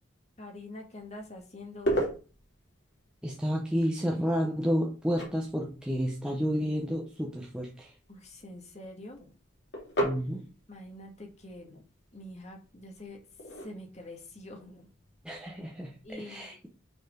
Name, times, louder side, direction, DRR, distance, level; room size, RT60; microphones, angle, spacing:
voice 1, 0.4-2.0 8.1-9.4 10.7-11.8 12.1-13.2 13.6-14.9 16.0-16.6, left 1 dB, 35° left, 2 dB, 1.9 m, -45 dB
sound 1, 1.0-16.1, right 1 dB, 60° left, 2.9 m, -39 dB
voice 2, 3.2-7.9 10.0-10.4 15.2-16.7, equal, 5° right, -2 dB, 1.0 m, -31 dB
6.5 x 4.7 x 5.3 m, 0.36 s
head